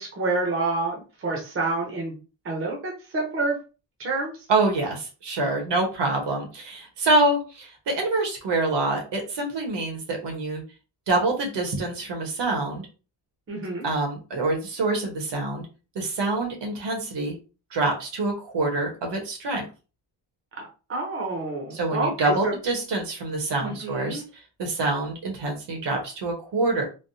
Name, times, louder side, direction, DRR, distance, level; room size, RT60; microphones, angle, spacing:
voice 1, 0.0-2.1 2.4-3.6 4.0-4.3 13.5-13.9 20.6-22.5 23.6-24.2, right 3 dB, 30° right, 0 dB, 0.7 m, -28 dB
voice 2, 4.5-10.6 11.1-12.8 13.8-15.7 15.9-17.4 17.7-19.6 21.7-24.2 24.6-26.8, right 2 dB, 70° right, 2 dB, 1.1 m, -26 dB
3.4 x 2.2 x 2.7 m, 0.33 s
wide cardioid pair, 170°, 43 cm